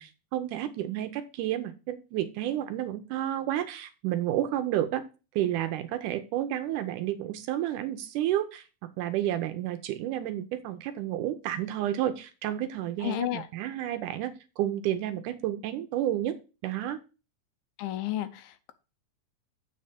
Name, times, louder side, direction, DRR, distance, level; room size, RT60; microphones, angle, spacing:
voice 1, 0.0-5.0 5.4-8.6 9.0-16.4 16.6-17.0, right 12 dB, 75° right, 10 dB, 2.1 m, -31 dB
voice 2, 13.0-13.5 17.8-18.7, left 14 dB, 85° left, 12 dB, 2.5 m, -32 dB
7.8 x 5.5 x 5.1 m, 0.31 s
omnidirectional pair, 4.0 m